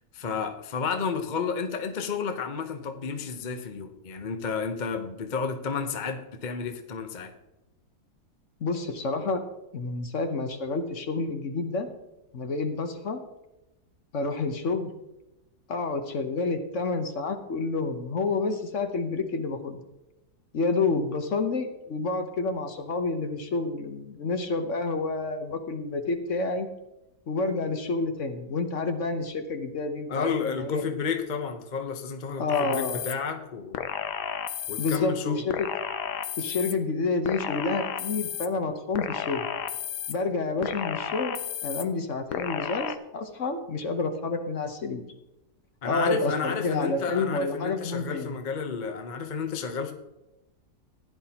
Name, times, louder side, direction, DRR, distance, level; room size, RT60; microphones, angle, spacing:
voice 1, 0.1-7.3 30.1-33.9 34.7-35.4 45.8-49.9, left 5 dB, 40° left, 5 dB, 0.8 m, -31 dB
voice 2, 8.6-9.4 9.7-11.9 12.3-13.2 14.1-14.9 15.7-19.8 20.5-26.7 27.3-30.8 32.4-33.0 34.8-35.5 36.4-39.5 40.1-41.4 41.6-45.0 45.8-48.4, left 3 dB, 55° left, 6 dB, 1.1 m, -29 dB
sound 1, 32.5-33.1 33.7-35.0 35.5-36.7 37.2-38.5 38.9-40.1 40.6-41.8 42.3-42.9, left 9 dB, 85° left, 1.3 m, -32 dB
15.5 x 10.5 x 2.9 m, 0.97 s
omnidirectional pair, 1.7 m